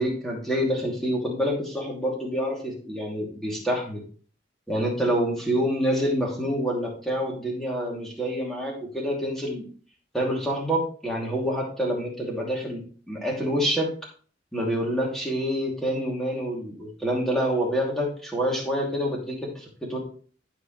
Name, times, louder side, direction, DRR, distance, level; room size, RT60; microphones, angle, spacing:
voice 1, 0.0-4.0 4.7-9.7 10.1-12.8 13.1-13.9 14.5-20.0, equal, ahead, -3 dB, 2.7 m, -27 dB
15.5 x 5.1 x 3.2 m, 0.43 s
head